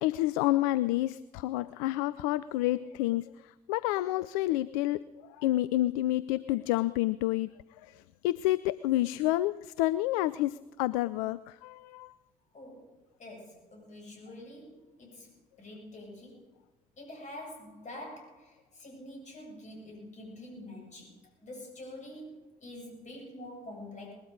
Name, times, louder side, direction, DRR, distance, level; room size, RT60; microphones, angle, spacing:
voice 1, 0.0-5.0 5.4-7.5 7.8-12.1, left 16 dB, 65° left, 17 dB, 0.4 m, -29 dB
voice 2, 12.5-16.5 17.0-24.1, left 1 dB, 40° left, 0 dB, 7.5 m, -46 dB
20.5 x 13.0 x 5.2 m, 1.1 s
figure-of-eight pair, 50°, 19 cm